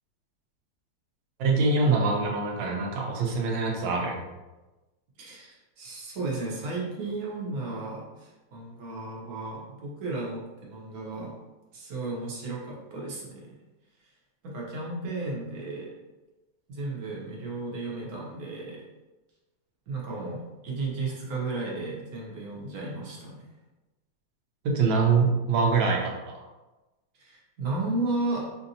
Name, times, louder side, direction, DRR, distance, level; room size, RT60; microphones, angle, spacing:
voice 1, 1.4-4.2 24.6-26.4, right 4 dB, 85° right, 0 dB, 1.4 m, -24 dB
voice 2, 5.2-11.3 11.7-13.5 14.4-15.9 16.7-18.8 19.9-23.4 27.2-28.5, right 2 dB, 60° right, -3 dB, 1.3 m, -34 dB
5.1 x 2.6 x 2.7 m, 1.1 s
omnidirectional pair, 2.0 m